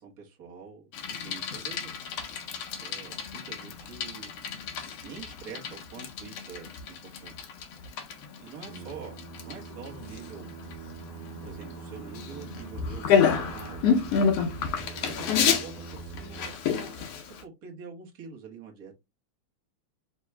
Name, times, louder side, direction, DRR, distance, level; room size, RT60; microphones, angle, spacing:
voice 1, 0.0-1.9 2.8-4.3 5.0-6.7 7.0-7.5 8.4-9.1 9.4-10.4 11.4-14.3 15.0-18.9, right 5 dB, 55° right, 1.0 m, -45 dB
Bicycle, 0.9-17.4, left 6 dB, 70° left, 1.6 m, -30 dB
Singing, 8.6-16.5, right 7 dB, 80° right, 1.9 m, -44 dB
4.6 x 2.9 x 3.3 m
omnidirectional pair, 3.3 m